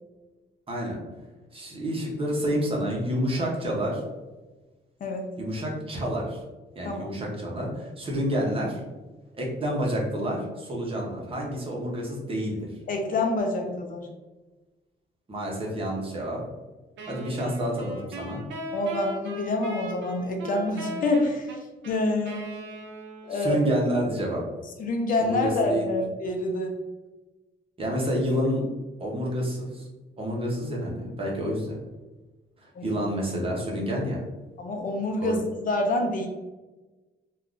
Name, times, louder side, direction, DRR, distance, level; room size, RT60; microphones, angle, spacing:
voice 1, 0.7-1.0 1.5-4.0 5.4-6.4 6.8-8.8 9.3-12.7 15.3-16.4 17.1-18.4 23.3-24.4 25.2-25.8 27.8-28.7 29.0-29.9 30.2-31.8 32.6-34.3 35.2-35.4, equal, 30° right, -2 dB, 0.7 m, -29 dB
voice 2, 12.9-14.1 18.7-21.5 21.9-22.4 23.2-23.6 24.8-26.8 32.7-33.0 34.6-36.3, left 2 dB, 50° left, 2 dB, 0.5 m, -27 dB
Wind instrument woodwind instrument, 17.0-23.5, equal, 90° right, 0.6 m, -38 dB
3.4 x 2.3 x 2.4 m, 1.2 s
cardioid pair, 140°, 18 cm